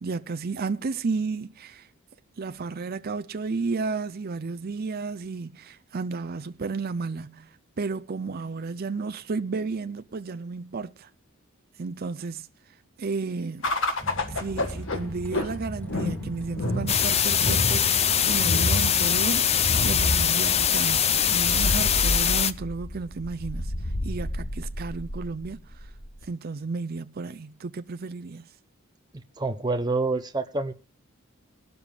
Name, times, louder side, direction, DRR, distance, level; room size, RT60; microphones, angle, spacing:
voice 1, 0.0-1.9 2.4-11.1 11.8-12.5 13.0-13.7 14.3-25.6 26.2-28.5, right 4 dB, 45° right, 0.5 m, -33 dB
sound 1, 13.6-26.2, left 1 dB, 65° left, 1.6 m, -30 dB
sound 2, 14.0-21.5, equal, 5° left, 2.7 m, -38 dB
sound 3, 16.9-22.5, left 8 dB, 30° left, 0.6 m, -22 dB
voice 2, 29.4-30.7, right 3 dB, 20° right, 0.9 m, -27 dB
20.0 x 12.5 x 2.4 m
head